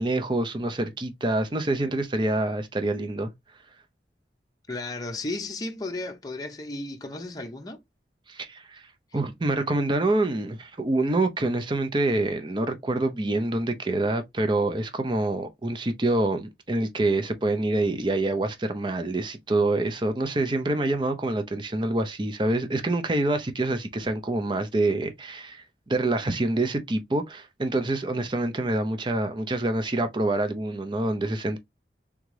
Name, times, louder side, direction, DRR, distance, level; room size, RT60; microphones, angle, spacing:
voice 1, 0.0-3.3 8.3-8.8 9.1-31.6, right 2 dB, 25° right, 0.6 m, -26 dB
voice 2, 4.7-7.8, left 2 dB, 20° left, 0.7 m, -34 dB
3.7 x 3.5 x 3.2 m
head